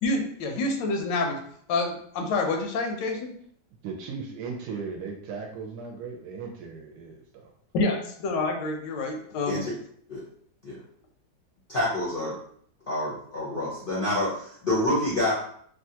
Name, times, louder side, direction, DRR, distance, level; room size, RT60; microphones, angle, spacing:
voice 1, 0.0-1.4 1.7-3.3 7.7-9.6, left 3 dB, 85° left, 3 dB, 1.3 m, -27 dB
voice 2, 3.8-7.5, right 5 dB, 75° right, 2 dB, 1.1 m, -37 dB
voice 3, 11.7-12.4 12.9-15.3, left 1 dB, 60° left, -7 dB, 0.5 m, -27 dB
3.2 x 2.3 x 2.7 m, 0.62 s
omnidirectional pair, 1.9 m